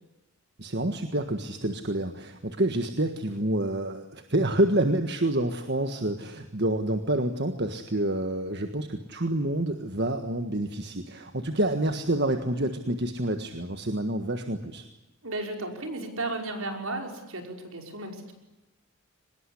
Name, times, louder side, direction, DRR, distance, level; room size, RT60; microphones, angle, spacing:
voice 1, 0.6-14.8, right 1 dB, 50° right, 7 dB, 1.6 m, -28 dB
voice 2, 15.2-18.3, right 2 dB, 70° right, 4 dB, 5.6 m, -34 dB
24.5 x 20.5 x 9.9 m, 1.0 s
head